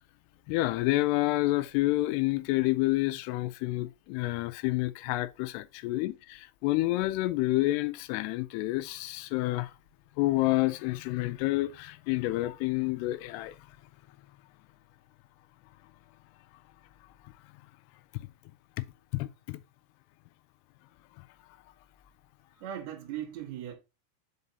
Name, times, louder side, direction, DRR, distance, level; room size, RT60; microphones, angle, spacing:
voice 1, 0.5-9.7 10.2-13.8 17.2-17.3 18.1-18.3 19.1-19.6 21.2-21.3, left 18 dB, 85° left, 2.6 m, -29 dB
voice 2, 22.6-23.8, right 10 dB, 55° right, 2.1 m, -38 dB
5.4 x 5.4 x 4.0 m
omnidirectional pair, 4.7 m